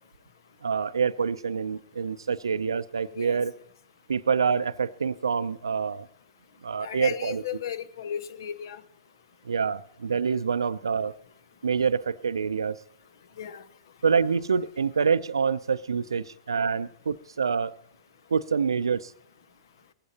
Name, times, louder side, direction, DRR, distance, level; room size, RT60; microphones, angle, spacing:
voice 1, 0.6-3.6 4.1-6.1 6.6-7.4 9.4-11.1 11.6-12.8 14.0-17.7 18.3-19.1, right 6 dB, 85° right, 14 dB, 0.4 m, -26 dB
voice 2, 6.8-8.8 13.4-13.6, left 9 dB, 65° left, 14 dB, 0.9 m, -35 dB
20.5 x 15.5 x 2.8 m, 0.68 s
hypercardioid pair, 110°, 2 cm